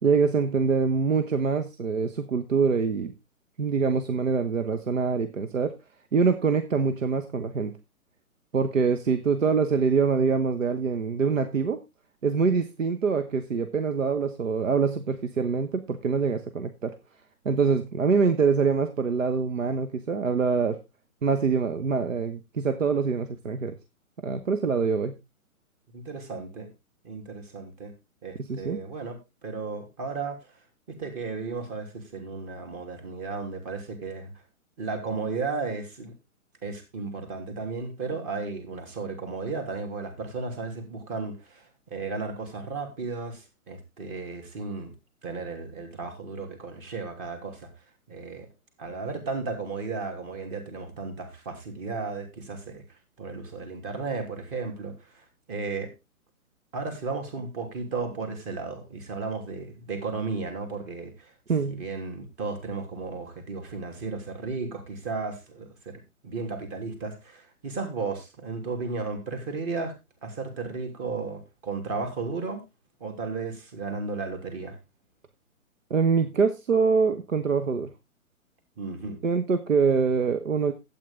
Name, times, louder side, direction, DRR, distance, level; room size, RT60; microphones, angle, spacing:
voice 1, 0.0-3.1 3.6-5.7 6.1-7.7 8.5-11.8 12.2-16.9 17.4-20.8 21.2-23.8 24.2-25.1 28.4-28.8 61.5-61.8 75.9-77.9 79.2-80.7, right 5 dB, 65° right, 1.3 m, -24 dB
voice 2, 25.9-26.7 27.0-27.9 28.2-30.5 30.9-34.3 34.8-36.1 36.6-44.9 45.2-47.7 48.1-48.5 48.8-52.8 53.2-55.9 56.7-61.3 61.7-66.0 66.2-69.9 70.2-72.6 73.0-74.8 78.8-79.2, right 4 dB, 25° right, 3.0 m, -34 dB
12.0 x 8.7 x 3.7 m
figure-of-eight pair, 125°, 43 cm